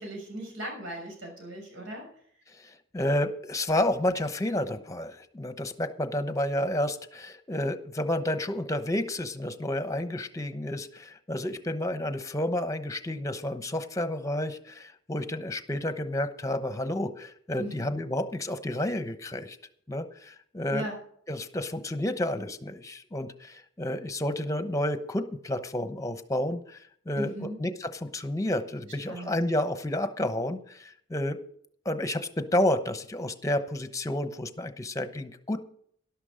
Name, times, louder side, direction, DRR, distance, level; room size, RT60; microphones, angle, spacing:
voice 1, 0.0-2.1 17.6-17.9 20.7-21.0 27.1-27.6 29.1-29.4, right 1 dB, 85° right, 1 dB, 6.5 m, -37 dB
voice 2, 2.5-19.6 19.9-20.9 21.3-31.4 31.8-35.6, left 1 dB, 15° left, 10 dB, 0.9 m, -30 dB
12.0 x 11.5 x 5.1 m, 0.63 s
head